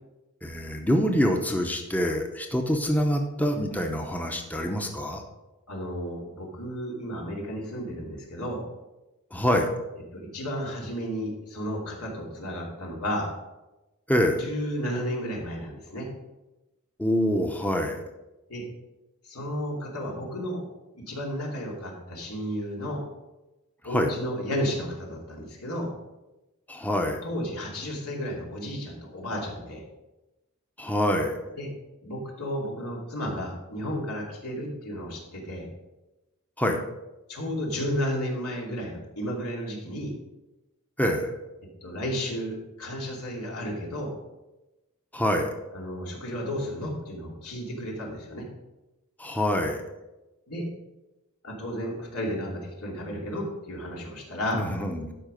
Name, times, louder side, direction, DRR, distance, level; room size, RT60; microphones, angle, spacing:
voice 1, 0.4-5.2 9.3-9.7 14.1-14.5 17.0-18.0 23.8-24.1 26.7-27.2 30.8-31.4 36.6-36.8 41.0-41.3 45.1-45.5 49.2-49.8 54.5-55.1, equal, 5° left, 3 dB, 0.7 m, -25 dB
voice 2, 5.7-8.6 10.1-13.3 14.4-16.1 18.5-18.7 19.2-20.6 20.9-23.0 23.8-25.9 27.2-29.8 31.6-31.7 32.0-35.7 37.3-40.1 41.8-44.1 45.7-48.4 50.5-50.7 51.4-54.6, equal, 85° left, -2 dB, 2.7 m, -33 dB
12.5 x 5.0 x 5.1 m, 1.0 s
head